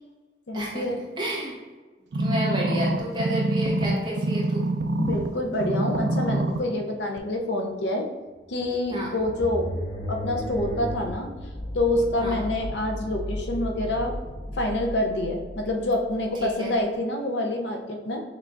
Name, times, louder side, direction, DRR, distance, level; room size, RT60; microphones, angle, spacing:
voice 1, 0.5-1.0 5.0-8.1 8.5-9.7 10.1-11.3 11.7-14.2 14.5-18.2, left 1 dB, 80° left, 2 dB, 0.6 m, -27 dB
voice 2, 1.2-1.5 2.2-4.7 8.9-9.1 12.2-12.4 16.4-16.7, right 1 dB, 25° right, -4 dB, 1.0 m, -30 dB
sound 1, 2.1-5.3 5.6-6.6 7.2-7.3, right 1 dB, 70° right, 0.4 m, -25 dB
sound 2, 8.5-16.8, equal, 20° left, 0.5 m, -35 dB
5.9 x 3.3 x 2.5 m, 1.3 s
head